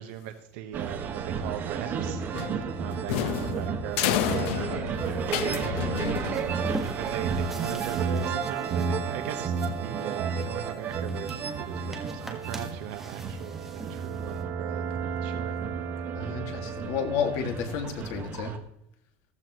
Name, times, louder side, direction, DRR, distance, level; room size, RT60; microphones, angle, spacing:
voice 1, 0.0-2.2 2.8-6.1 6.8-9.5 9.8-15.6, right 10 dB, 70° right, 6 dB, 1.2 m, -39 dB
sound 1, 0.7-18.6, right 6 dB, 30° right, 1.5 m, -32 dB
sound 2, 2.3-6.8, left 11 dB, 85° left, 0.9 m, -30 dB
sound 3, 6.3-14.4, right 1 dB, 5° right, 1.5 m, -43 dB
voice 2, 16.1-18.6, left 6 dB, 55° left, 5 dB, 2.2 m, -31 dB
15.0 x 14.5 x 3.1 m, 0.74 s
cardioid pair, 165°, 7 cm